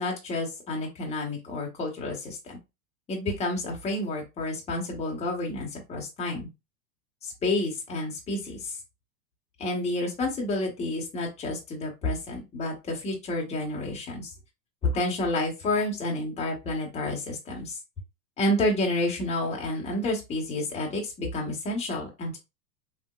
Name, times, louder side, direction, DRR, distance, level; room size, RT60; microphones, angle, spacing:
voice 1, 0.0-2.6 3.1-6.5 7.2-8.8 9.6-14.3 14.8-17.8 18.4-22.4, left 2 dB, 15° left, -1 dB, 0.8 m, -30 dB
3.3 x 2.9 x 2.2 m, 0.24 s
supercardioid pair, 145°, 49 cm